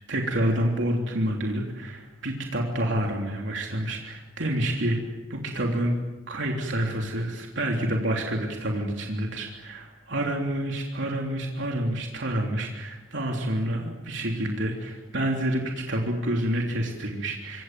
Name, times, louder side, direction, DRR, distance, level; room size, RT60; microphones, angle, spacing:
voice 1, 0.1-6.0 6.3-17.6, right 1 dB, 65° right, 0 dB, 3.4 m, -28 dB
27.0 x 25.5 x 7.7 m, 1.1 s
head